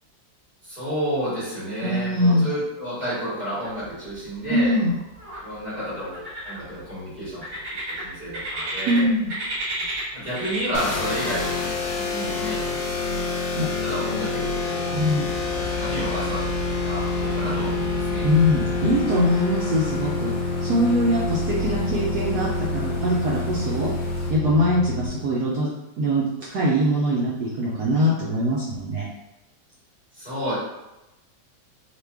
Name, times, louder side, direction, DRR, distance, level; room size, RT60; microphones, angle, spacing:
voice 1, 0.6-4.7 5.4-7.4 7.9-9.1 10.1-11.5 11.9-13.4 13.8-14.9 15.4-18.3 30.1-30.6, equal, 25° left, -11 dB, 1.2 m, -31 dB
voice 2, 1.8-2.5 4.5-5.0 8.9-9.3 13.6-13.7 14.9-15.3 18.2-20.3 20.6-22.5 22.7-23.9 24.3-25.7 26.0-26.2 26.5-29.0, equal, 70° right, -6 dB, 1.0 m, -22 dB
sound 1, 3.6-4.2 4.5-5.4 6.0-6.9 7.4-9.0 9.3-11.0, right 1 dB, 50° right, 1.3 m, -32 dB
sound 2, 10.7-25.1, left 3 dB, 85° left, 1.3 m, -27 dB
sound 3, 15.2-24.3, left 3 dB, 60° left, 0.6 m, -37 dB
3.1 x 2.2 x 3.4 m, 0.96 s
omnidirectional pair, 2.1 m